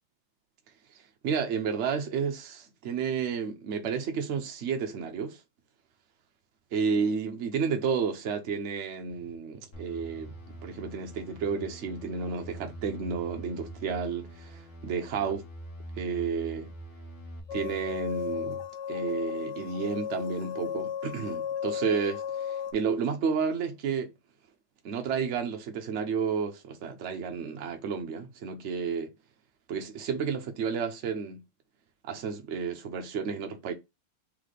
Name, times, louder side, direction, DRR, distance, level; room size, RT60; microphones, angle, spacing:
voice 1, 0.9-5.4 6.7-10.3 10.6-15.4 16.0-16.7 17.5-18.6 18.9-24.1 24.8-29.1 29.7-31.4 32.0-33.7, right 6 dB, 70° right, 0.7 m, -31 dB
sound 1, 9.1-9.6 10.0-12.0 12.4-14.5 14.8-16.8 17.2-18.7, left 2 dB, 10° left, 0.9 m, -49 dB
sound 2, 9.7-17.4, right 2 dB, 35° left, 1.6 m, -46 dB
sound 3, 17.5-22.7, left 8 dB, 85° left, 1.4 m, -35 dB
3.6 x 3.2 x 4.0 m
omnidirectional pair, 1.9 m